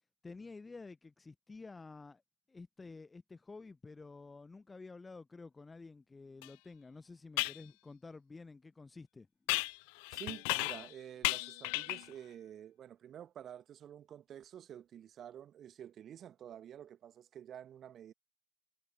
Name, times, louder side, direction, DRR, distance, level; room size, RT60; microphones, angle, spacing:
voice 1, 0.2-2.2 2.5-9.3, left 3 dB, 10° left, 1.0 m, -51 dB
sound 1, 6.4-6.5 7.4-7.6 9.5-10.9 11.2-12.1, left 40 dB or more, 45° left, 0.4 m, -35 dB
voice 2, 10.1-18.1, right 10 dB, 25° right, 1.7 m, -50 dB
figure-of-eight pair, 90°, 0 cm